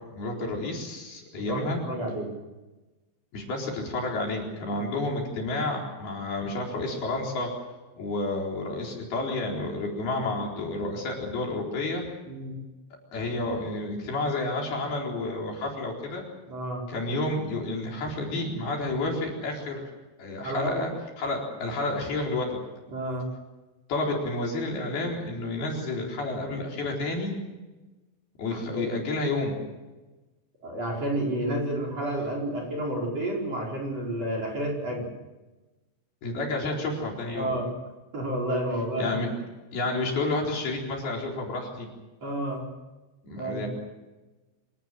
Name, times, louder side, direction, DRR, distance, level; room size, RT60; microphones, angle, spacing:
voice 1, 0.2-1.8 3.3-7.5 8.0-12.1 13.1-16.2 16.9-19.8 20.2-20.9 21.2-22.6 23.9-27.4 28.4-29.6 36.2-37.5 39.0-39.3 39.7-41.9 43.2-43.7, left 2 dB, 55° left, 0 dB, 5.9 m, -30 dB
voice 2, 1.3-2.3 4.8-4.9 12.3-12.6 16.5-16.9 20.4-20.8 22.9-23.3 28.5-28.8 30.6-35.1 37.3-37.8 38.1-39.1 42.2-42.7 43.3-43.7, right 1 dB, 35° right, 0 dB, 5.5 m, -30 dB
26.0 x 18.0 x 7.7 m, 1.1 s
omnidirectional pair, 5.4 m